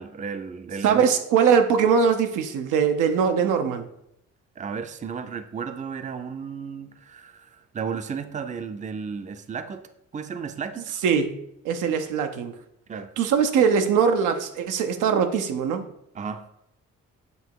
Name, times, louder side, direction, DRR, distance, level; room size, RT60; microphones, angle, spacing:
voice 1, 0.0-1.0 4.6-9.8 10.1-11.0 12.9-13.1 16.1-16.4, right 6 dB, 25° right, 9 dB, 0.5 m, -34 dB
voice 2, 0.8-3.8 11.0-11.3 11.6-12.5 13.2-15.8, right 6 dB, 85° right, 6 dB, 0.7 m, -21 dB
8.0 x 2.9 x 4.6 m, 0.80 s
cardioid pair, 90°, 30 cm